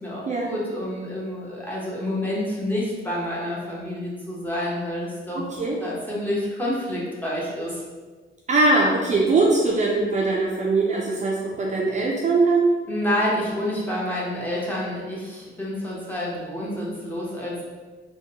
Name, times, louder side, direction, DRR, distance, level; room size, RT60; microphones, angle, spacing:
voice 1, 0.0-5.4 5.8-7.8 12.9-17.6, left 1 dB, 10° left, -6 dB, 0.9 m, -28 dB
voice 2, 5.3-5.8 8.5-12.7, right 3 dB, 35° right, -3 dB, 0.4 m, -21 dB
3.5 x 2.2 x 2.8 m, 1.3 s
cardioid pair, 110°, 21 cm